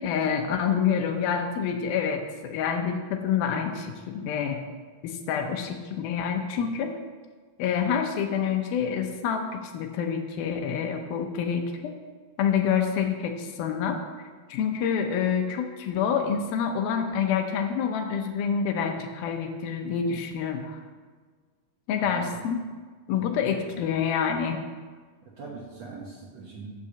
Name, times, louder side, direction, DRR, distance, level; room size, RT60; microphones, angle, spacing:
voice 1, 0.0-4.6 5.0-6.9 7.6-12.0 12.4-14.0 14.5-20.8 21.9-22.6 23.1-24.6, left 7 dB, 80° left, 4 dB, 2.7 m, -27 dB
voice 2, 22.0-22.4 23.2-23.8 25.2-26.7, right 4 dB, 60° right, -3 dB, 1.8 m, -42 dB
9.9 x 5.6 x 6.9 m, 1.5 s
omnidirectional pair, 4.3 m